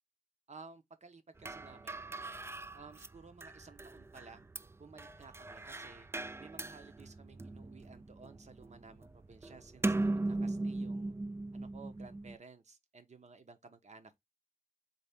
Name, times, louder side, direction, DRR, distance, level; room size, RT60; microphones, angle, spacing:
voice 1, 0.5-2.1 2.7-4.5 4.8-6.1 6.4-11.1 11.5-14.2, right 4 dB, 50° right, 1.1 m, -55 dB
sound 1, 1.4-12.4, right 2 dB, 15° right, 0.3 m, -39 dB
4.2 x 3.5 x 3.5 m
cardioid pair, 75°, 15 cm